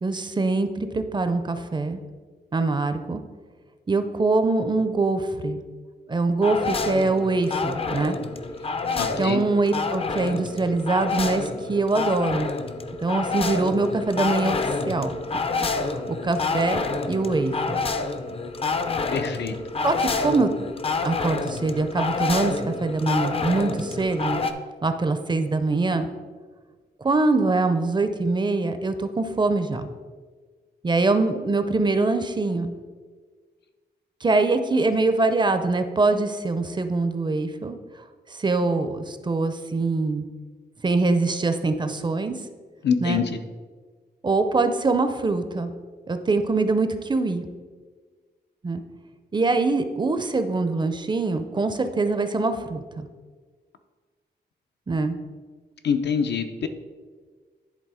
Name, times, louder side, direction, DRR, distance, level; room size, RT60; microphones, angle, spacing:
voice 1, 0.0-2.0 2.5-3.2 3.9-5.6 6.1-8.2 9.2-12.5 13.0-14.6 14.9-15.1 15.6-15.9 16.2-16.8 17.1-17.8 19.8-20.5 21.0-24.4 24.8-26.1 27.0-29.9 30.8-32.7 34.2-37.8 38.3-40.2 40.8-42.3 43.0-43.2 44.2-45.7 46.1-47.4 48.6-48.8 49.3-52.8 54.9-55.2, right 3 dB, 25° right, 9 dB, 0.5 m, -23 dB
sound 1, 6.4-24.5, left 4 dB, 35° left, 0.4 m, -28 dB
voice 2, 8.9-9.4 19.1-19.5 42.8-43.4 55.8-56.7, left 6 dB, 80° left, 7 dB, 0.6 m, -25 dB
10.5 x 3.5 x 4.8 m, 1.5 s
wide cardioid pair, 150°, 18 cm